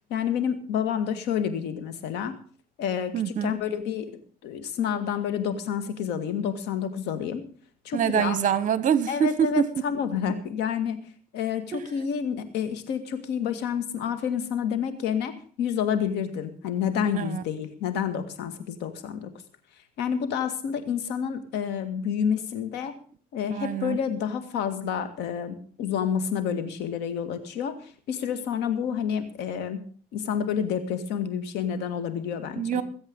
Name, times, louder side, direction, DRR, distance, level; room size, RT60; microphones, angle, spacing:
voice 1, 0.1-2.3 2.8-4.1 4.4-7.4 7.8-8.4 9.1-11.0 11.3-19.3 20.0-22.9 23.3-29.8 30.1-32.6, left 8 dB, 85° left, 10 dB, 2.1 m, -29 dB
voice 2, 3.1-3.6 7.9-9.6 11.7-11.9 17.1-17.4 23.5-24.0 32.6-32.8, right 8 dB, 50° right, 15 dB, 1.4 m, -25 dB
20.5 x 8.2 x 5.4 m, 0.43 s
cardioid pair, 110°, 17 cm